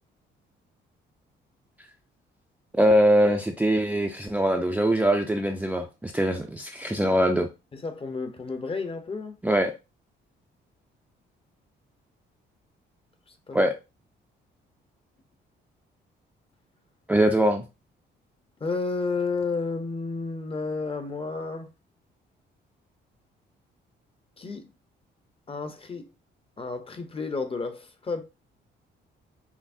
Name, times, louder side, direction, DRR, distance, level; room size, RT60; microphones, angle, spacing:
voice 1, 2.7-7.5 9.4-9.7 13.5-13.7 17.1-17.7, equal, 5° right, 0.4 m, -22 dB
voice 2, 7.7-9.3 13.5-13.7 18.6-21.7 24.4-24.7 25.5-26.1 26.6-28.2, left 4 dB, 30° left, 0.7 m, -31 dB
5.7 x 2.0 x 2.6 m
cardioid pair, 90°, 20 cm